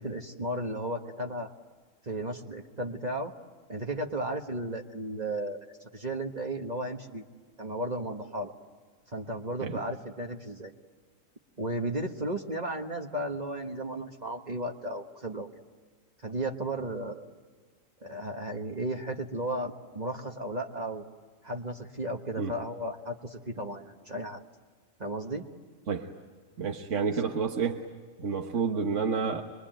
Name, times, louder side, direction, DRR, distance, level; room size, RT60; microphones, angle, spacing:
voice 1, 0.0-1.5 2.0-3.3 3.7-5.6 5.9-7.2 7.6-8.5 9.1-10.7 11.6-15.5 16.2-17.3 18.0-21.0 21.4-24.4 25.0-25.4, right 1 dB, 35° right, 3 dB, 1.5 m, -34 dB
voice 2, 26.6-27.8 28.2-29.4, right 5 dB, 70° right, 3 dB, 1.6 m, -29 dB
27.0 x 22.5 x 9.0 m, 1.5 s
omnidirectional pair, 1.4 m